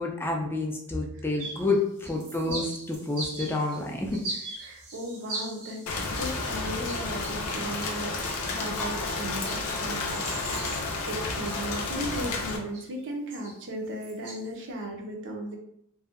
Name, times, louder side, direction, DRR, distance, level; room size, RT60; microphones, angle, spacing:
voice 1, 0.0-4.2, left 2 dB, 10° left, 0 dB, 0.3 m, -29 dB
sound 1, 1.4-1.8 2.0-6.5 6.8-8.3 8.8-10.9 11.4-11.8 12.1-13.0 13.3-14.5, right 2 dB, 85° right, 1.0 m, -40 dB
voice 2, 2.1-2.6 4.6-10.2 11.1-15.6, right 1 dB, 55° right, 2 dB, 0.5 m, -36 dB
Rain, 5.9-12.6, left 3 dB, 70° left, 0.5 m, -31 dB
2.6 x 2.1 x 2.4 m, 0.74 s
head